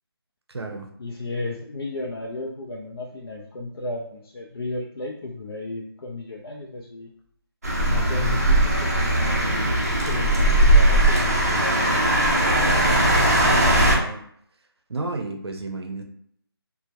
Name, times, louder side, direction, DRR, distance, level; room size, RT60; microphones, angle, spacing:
voice 1, 0.5-0.9 13.9-14.2 14.9-16.0, right 2 dB, 90° right, 4 dB, 0.5 m, -32 dB
voice 2, 1.0-7.1 7.8-11.8, left 2 dB, 65° left, -3 dB, 0.5 m, -34 dB
city street traffic passing cars, 7.6-14.0, right 1 dB, 40° right, 0.5 m, -19 dB
2.1 x 2.1 x 2.8 m, 0.67 s
figure-of-eight pair, 175°, 13 cm